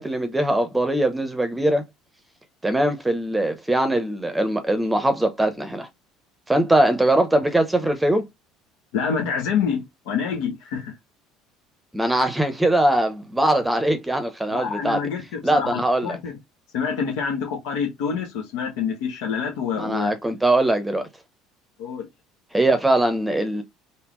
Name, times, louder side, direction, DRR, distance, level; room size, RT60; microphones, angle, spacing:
voice 1, 0.0-1.8 2.6-5.9 6.5-8.2 11.9-15.0 15.4-16.2 19.8-21.1 22.5-23.6, right 1 dB, 10° right, 0.8 m, -21 dB
voice 2, 8.9-10.9 12.0-12.3 14.5-16.4 16.7-20.2 21.8-22.1, left 6 dB, 80° left, 1.1 m, -27 dB
3.5 x 2.7 x 3.0 m
supercardioid pair, 90°, 0 cm